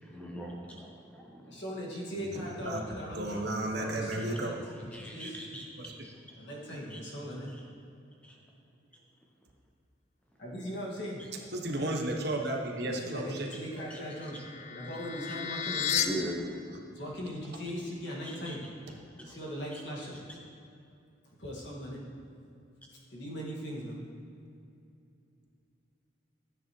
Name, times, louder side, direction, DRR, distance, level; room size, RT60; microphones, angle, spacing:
voice 1, 0.0-1.6 4.1-4.2 4.9-5.7 6.0-6.1 6.9-7.0 7.5-7.6 8.2-8.4 13.8-14.0 16.0-16.7 18.2-18.6 19.2-19.4 19.7-19.8, equal, 5° left, -1 dB, 0.7 m, -41 dB
voice 2, 1.5-4.5 4.9-5.6 6.4-7.5 10.4-11.3 12.8-14.4 14.7-16.0 16.9-18.6 19.2-20.2 21.4-22.1 23.1-24.0, equal, 60° left, -4 dB, 1.9 m, -39 dB
voice 3, 2.1-2.8 3.1-4.6 5.8-6.1 11.5-13.5, right 1 dB, 55° right, 1 dB, 0.9 m, -34 dB
sound 1, 13.8-16.1, left 9 dB, 35° left, 0.4 m, -34 dB
10.5 x 9.0 x 3.1 m, 2.6 s
head